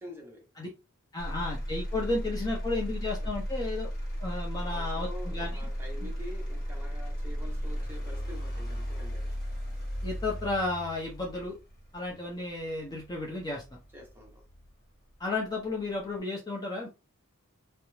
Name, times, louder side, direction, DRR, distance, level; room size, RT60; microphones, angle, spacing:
voice 1, 0.0-0.5 4.7-9.3 13.9-14.5, left 1 dB, 10° right, 0.8 m, -47 dB
voice 2, 1.1-3.9 4.2-5.6 6.0-6.1 10.0-11.6 11.9-13.6 15.2-16.9, left 2 dB, 20° left, 0.6 m, -33 dB
Motor vehicle (road), 1.2-15.2 15.7-16.2, equal, 45° left, 1.1 m, -36 dB
2.4 x 2.0 x 3.0 m
head